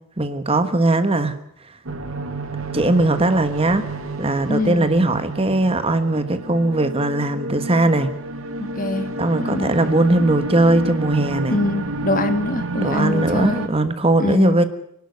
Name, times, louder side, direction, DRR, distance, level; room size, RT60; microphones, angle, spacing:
voice 1, 0.2-1.4 2.7-3.8 4.2-8.1 9.2-11.6 12.8-14.6, right 2 dB, 30° right, 10 dB, 1.3 m, -19 dB
sound 1, 1.8-13.7, right 2 dB, 90° right, 2.2 m, -30 dB
voice 2, 4.5-4.8 8.6-9.1 9.4-9.7 11.5-13.7 14.2-14.6, left 2 dB, 40° left, 10 dB, 1.6 m, -23 dB
25.0 x 12.0 x 9.7 m, 0.75 s
head